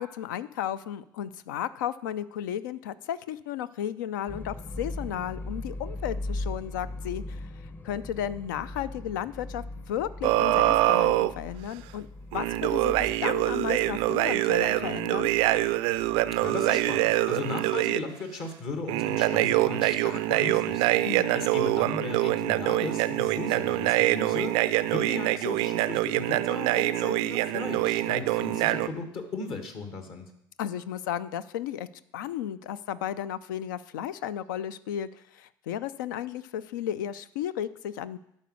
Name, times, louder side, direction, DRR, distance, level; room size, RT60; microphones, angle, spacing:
voice 1, 0.0-7.5 7.8-12.1 12.3-15.3 21.0-21.4 30.6-31.9 32.1-38.2, left 10 dB, 70° left, 15 dB, 0.4 m, -34 dB
sound 1, 4.3-17.2, left 2 dB, 15° left, 0.7 m, -40 dB
sound 2, 10.2-11.3 12.3-18.0 18.9-28.9, right 16 dB, 60° right, 0.3 m, -25 dB
voice 2, 16.4-21.0 21.3-30.3, left 3 dB, 55° left, 6 dB, 1.6 m, -36 dB
11.5 x 4.3 x 6.4 m, 0.78 s
figure-of-eight pair, 60°, 11 cm